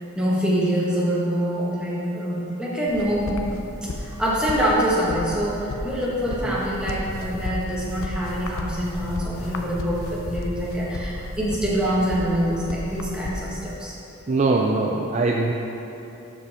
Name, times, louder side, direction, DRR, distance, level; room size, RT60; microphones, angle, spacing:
voice 1, 0.1-3.4 3.8-13.9, equal, 5° right, -7 dB, 1.4 m, -25 dB
sound 1, 2.9-13.8, left 1 dB, 65° left, 0.7 m, -33 dB
voice 2, 14.3-15.5, right 3 dB, 30° right, 0 dB, 0.4 m, -22 dB
12.0 x 5.1 x 4.3 m, 3.0 s
head